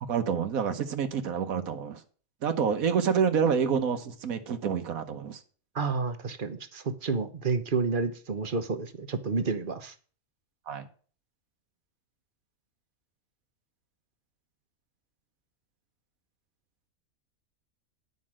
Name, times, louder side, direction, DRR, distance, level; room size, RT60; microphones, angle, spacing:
voice 1, 0.0-2.0 2.4-5.4 10.7-10.9, right 7 dB, 85° right, 8 dB, 1.4 m, -28 dB
voice 2, 5.7-9.9, right 4 dB, 40° right, 10 dB, 1.0 m, -30 dB
9.6 x 5.4 x 7.4 m, 0.41 s
omnidirectional pair, 1.5 m